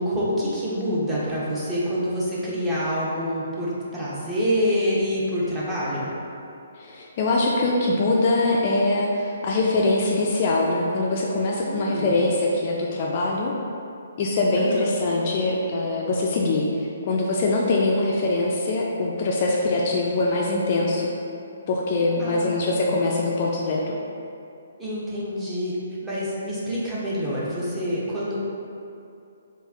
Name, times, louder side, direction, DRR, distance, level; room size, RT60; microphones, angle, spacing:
voice 1, 0.0-6.1 11.7-12.2 14.6-14.9 22.2-22.9 24.8-25.7 26.0-28.4, equal, 10° right, -8 dB, 0.7 m, -27 dB
voice 2, 6.8-13.5 14.2-16.7 17.1-21.1 21.7-23.9, left 2 dB, 35° left, -3 dB, 0.3 m, -23 dB
3.3 x 2.5 x 3.5 m, 2.6 s
figure-of-eight pair, 130°, 0 cm